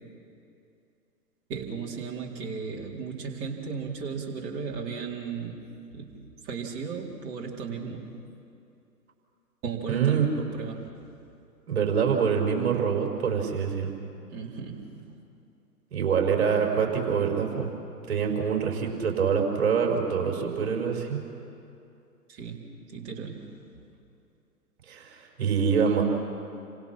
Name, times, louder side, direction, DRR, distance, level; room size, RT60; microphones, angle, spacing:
voice 1, 1.5-5.6 5.9-6.1 6.4-8.0 9.6-10.2 10.5-10.9 14.3-15.1 22.3-22.6 22.9-23.8, right 5 dB, 25° right, -3 dB, 4.0 m, -35 dB
voice 2, 9.9-10.3 11.7-13.9 15.9-17.7 18.1-21.2 24.9-26.0, right 6 dB, 40° right, 1 dB, 5.8 m, -25 dB
29.0 x 26.5 x 6.0 m, 2.7 s
figure-of-eight pair, 125°, 48 cm